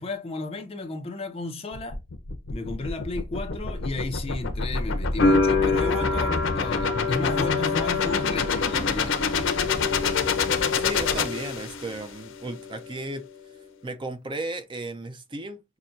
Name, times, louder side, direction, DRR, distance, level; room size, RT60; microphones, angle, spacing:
voice 1, 0.0-2.0 2.5-9.2, left 2 dB, 30° left, 0.6 m, -33 dB
sound 1, 1.7-12.0, left 5 dB, 80° left, 0.6 m, -27 dB
sound 2, 5.2-12.0 12.3-13.1, left 4 dB, 65° left, 1.1 m, -27 dB
voice 2, 10.7-13.2 13.8-15.6, right 2 dB, 25° right, 0.4 m, -34 dB
5.8 x 2.2 x 2.5 m
head